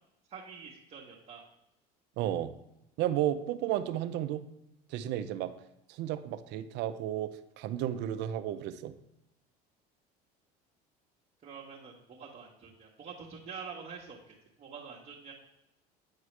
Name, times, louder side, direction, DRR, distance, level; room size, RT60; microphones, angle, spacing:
voice 1, 0.3-1.4 11.4-15.3, right 6 dB, 40° right, -4 dB, 1.3 m, -46 dB
voice 2, 2.2-2.5 3.0-4.4 4.9-5.5 5.9-8.9, right 12 dB, 60° right, 11 dB, 0.6 m, -33 dB
8.2 x 4.7 x 3.2 m, 0.88 s
supercardioid pair, 100°, 20 cm